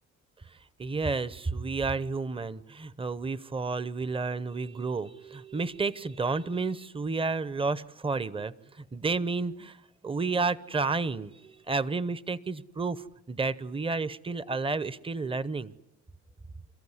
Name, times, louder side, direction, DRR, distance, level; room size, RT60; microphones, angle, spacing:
voice 1, 0.5-15.7, right 4 dB, 20° right, 17 dB, 0.8 m, -31 dB
28.5 x 14.5 x 9.7 m, 0.98 s
cardioid pair, 90°, 30 cm